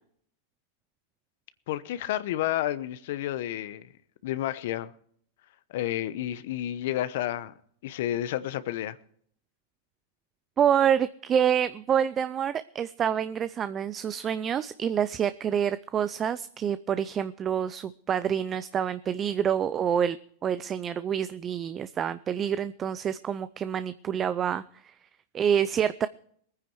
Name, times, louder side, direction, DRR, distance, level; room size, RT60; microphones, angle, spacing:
voice 1, 1.7-3.9 4.2-4.9 5.7-7.5 7.8-9.0, left 13 dB, 65° left, 0.9 m, -30 dB
voice 2, 10.6-20.2 20.4-24.9 25.3-26.1, right 8 dB, 30° right, 0.5 m, -27 dB
20.5 x 9.6 x 4.7 m
hypercardioid pair, 115°, 0 cm